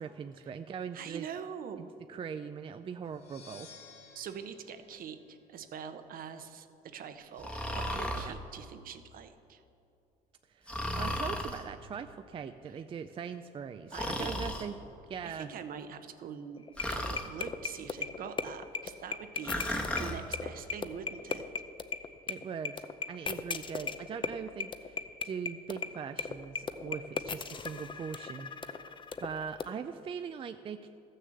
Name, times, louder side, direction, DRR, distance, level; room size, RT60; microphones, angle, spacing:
voice 1, 0.0-1.3 1.8-3.7 8.2-8.4 10.5-14.8 15.1-15.5 22.3-30.9, right 6 dB, 30° right, 8 dB, 0.4 m, -41 dB
voice 2, 0.9-1.8 4.1-9.6 13.9-14.3 15.2-19.6 20.0-21.4, right 7 dB, 60° right, 9 dB, 0.9 m, -44 dB
sound 1, 3.0-5.9, left 5 dB, 70° left, 2.0 m, -55 dB
Breathing, 7.4-8.3 10.7-11.6 13.9-14.7 16.8-17.3 19.4-20.2, left 1 dB, 5° left, 1.1 m, -34 dB
sound 2, 16.6-29.7, left 5 dB, 30° left, 0.6 m, -36 dB
13.5 x 6.6 x 7.6 m, 2.6 s
cardioid pair, 110°, 17 cm